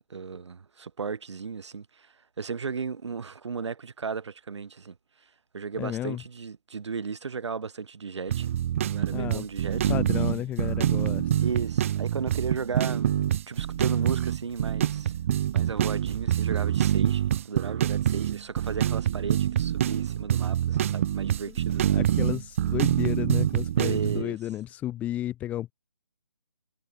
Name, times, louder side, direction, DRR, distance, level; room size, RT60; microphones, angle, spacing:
voice 1, 0.1-5.0 5.5-8.5 8.9-9.9 11.4-13.2 13.5-21.9 23.8-24.4, right 5 dB, 55° right, 5.4 m, -35 dB
voice 2, 5.8-6.2 9.1-9.4 9.9-11.3 21.9-25.7, left 13 dB, 10° left, 1.3 m, -32 dB
sound 1, 8.3-24.2, right 11 dB, 25° right, 1.0 m, -26 dB
hypercardioid pair, 165°, 17 cm